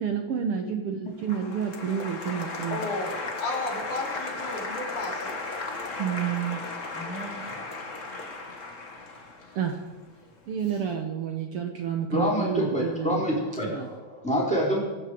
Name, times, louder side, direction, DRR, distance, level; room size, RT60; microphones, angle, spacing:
voice 1, 0.0-2.8 6.0-6.6 9.5-9.8 10.5-13.2 13.7-13.9, right 8 dB, 65° right, 5 dB, 1.7 m, -30 dB
Applause, 1.2-10.3, left 3 dB, 35° left, 1.4 m, -36 dB
voice 2, 2.7-3.1 3.4-5.4 6.9-7.5, left 2 dB, 85° left, -1 dB, 4.6 m, -33 dB
voice 3, 12.1-14.8, equal, ahead, -5 dB, 4.4 m, -26 dB
24.5 x 9.9 x 5.0 m, 1.2 s
omnidirectional pair, 3.4 m